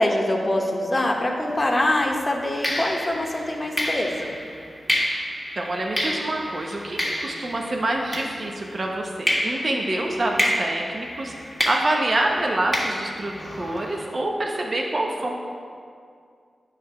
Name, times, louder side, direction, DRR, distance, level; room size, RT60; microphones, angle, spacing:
voice 1, 0.0-4.3, left 1 dB, 30° left, 1 dB, 1.0 m, -24 dB
sound 1, 1.5-1.7 2.6-8.8 9.3-14.0, left 1 dB, 10° left, 1.5 m, -29 dB
voice 2, 5.6-11.3 11.7-15.3, right 1 dB, 50° right, 0 dB, 0.7 m, -26 dB
8.4 x 3.3 x 5.6 m, 2.3 s
cardioid pair, 55°, 0 cm